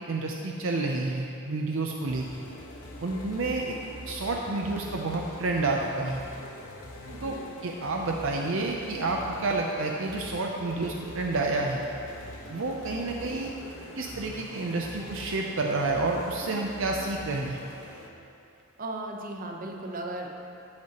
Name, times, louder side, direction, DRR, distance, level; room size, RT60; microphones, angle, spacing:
voice 1, 0.1-2.2 3.0-3.8 4.1-6.2 7.2-7.3 7.6-11.8 12.5-13.5 14.0-17.6, right 3 dB, 65° right, 0 dB, 0.6 m, -29 dB
sound 1, 2.1-18.1, left 1 dB, 85° left, 1.0 m, -43 dB
voice 2, 7.0-7.4 13.1-13.4 18.8-20.3, right 2 dB, 40° right, 1 dB, 0.9 m, -37 dB
13.5 x 7.5 x 3.0 m, 2.6 s
head